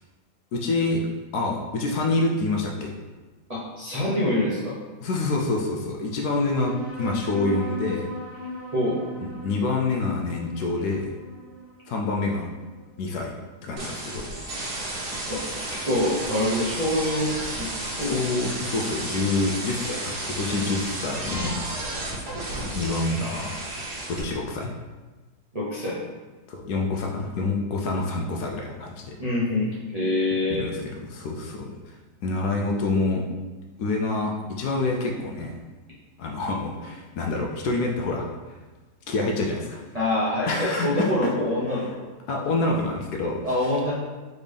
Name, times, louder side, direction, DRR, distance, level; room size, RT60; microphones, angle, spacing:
voice 1, 0.5-1.0 1.3-2.9 5.0-8.1 9.2-11.1 11.9-12.5 13.0-13.3 13.6-14.3 18.0-21.9 22.6-23.5 24.1-24.7 26.5-29.2 30.5-30.8 31.1-31.9 32.2-33.2 33.8-35.6 36.2-38.6 39.1-39.8 40.5-41.3 42.3-43.7, left 3 dB, 70° left, 0 dB, 1.0 m, -27 dB
voice 2, 3.5-4.8 8.7-9.0 15.3-15.4 15.7-17.7 18.0-18.2 25.5-26.0 29.2-30.7 39.9-41.9 43.4-43.9, left 1 dB, 35° right, -10 dB, 0.6 m, -25 dB
sound 1, 6.5-13.5, right 2 dB, 15° left, 0.6 m, -38 dB
sound 2, 13.8-24.2, right 1 dB, 70° right, 1.6 m, -32 dB
4.0 x 3.5 x 3.3 m, 1.3 s
omnidirectional pair, 1.8 m